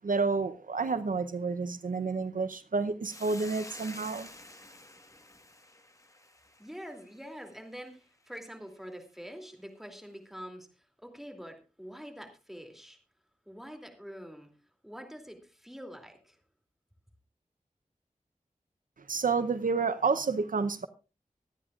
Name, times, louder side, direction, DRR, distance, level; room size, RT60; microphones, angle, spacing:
voice 1, 0.0-4.3 19.1-20.9, right 4 dB, 70° right, 11 dB, 0.7 m, -30 dB
Hiss, 3.0-7.5, left 1 dB, 25° left, 1.4 m, -49 dB
voice 2, 6.6-13.0 13.5-14.5 14.8-16.4, equal, ahead, 4 dB, 2.7 m, -45 dB
24.0 x 9.7 x 2.4 m, 0.31 s
wide cardioid pair, 85°, 14 cm